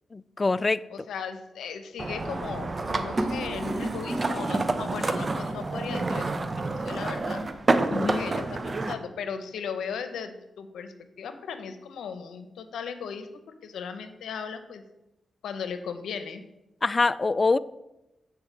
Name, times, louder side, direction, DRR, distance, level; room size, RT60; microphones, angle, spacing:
voice 1, 0.1-0.8 7.9-8.3 16.8-17.6, left 3 dB, 35° left, 0.3 m, -24 dB
voice 2, 0.9-7.4 8.0-14.8 15.4-16.4, left 6 dB, 90° left, 0.7 m, -37 dB
sound 1, 2.0-8.9, right 2 dB, 35° right, 0.7 m, -28 dB
8.1 x 4.7 x 6.0 m
cardioid pair, 65°, 0 cm